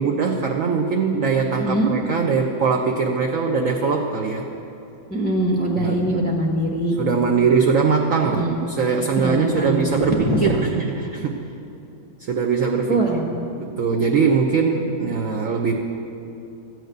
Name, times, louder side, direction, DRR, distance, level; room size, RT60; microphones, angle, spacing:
voice 1, 0.0-4.4 5.8-6.0 7.0-11.4 12.3-13.3 13.6-15.7, right 5 dB, 60° right, 1 dB, 0.9 m, -21 dB
voice 2, 1.6-1.9 5.1-7.0 8.2-8.6 9.2-10.5 12.9-13.2, right 1 dB, 10° left, -2 dB, 0.5 m, -22 dB
14.0 x 6.6 x 9.2 m, 2.7 s
omnidirectional pair, 2.1 m